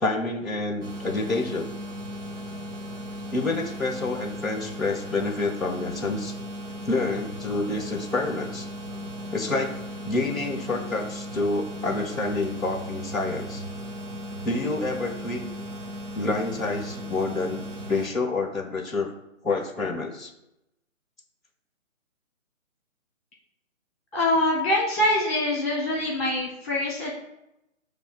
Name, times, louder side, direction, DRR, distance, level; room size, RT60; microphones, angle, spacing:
voice 1, 0.0-1.7 3.3-6.3 6.8-8.7 9.3-9.7 10.0-13.6 14.4-15.4 16.1-19.1 19.4-20.3, left 3 dB, ahead, -9 dB, 0.5 m, -28 dB
sound 1, 0.8-18.1, equal, 60° right, 1.6 m, -36 dB
voice 2, 24.1-27.1, left 1 dB, 30° left, -2 dB, 1.4 m, -24 dB
7.1 x 3.2 x 6.1 m, 0.87 s
hypercardioid pair, 180°, 40 cm